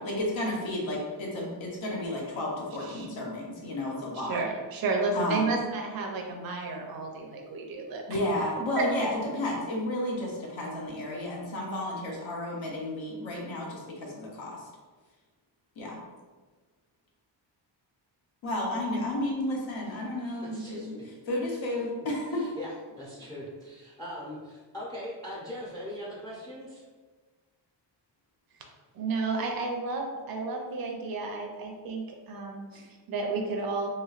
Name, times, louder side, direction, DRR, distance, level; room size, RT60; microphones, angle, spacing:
voice 1, 0.0-4.4 5.1-5.6 8.1-14.6 15.8-16.0 18.4-21.0 21.3-22.4 32.7-32.8, left 1 dB, 85° left, -3 dB, 1.0 m, -32 dB
voice 2, 4.3-8.2 28.9-33.9, right 3 dB, 50° right, 1 dB, 0.6 m, -32 dB
voice 3, 19.9-21.0 21.5-21.6 22.3-26.8, equal, 10° left, -5 dB, 0.4 m, -41 dB
3.1 x 3.0 x 2.4 m, 1.4 s
wide cardioid pair, 150°, 45 cm